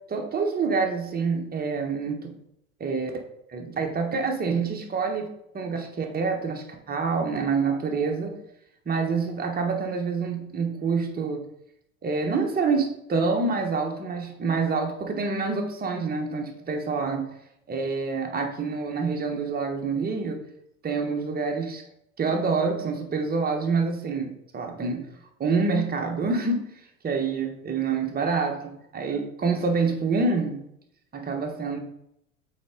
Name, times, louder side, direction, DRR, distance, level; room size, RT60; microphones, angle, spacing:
voice 1, 0.1-2.3 2.8-3.1 3.5-5.3 5.5-8.4 8.8-11.4 12.0-17.3 17.7-20.4 20.8-21.8 22.2-25.0 25.4-26.7 27.0-30.7 31.1-31.8, right 4 dB, 20° right, 3 dB, 1.3 m, -27 dB
7.7 x 4.4 x 3.7 m, 0.78 s
figure-of-eight pair, 80°, 43 cm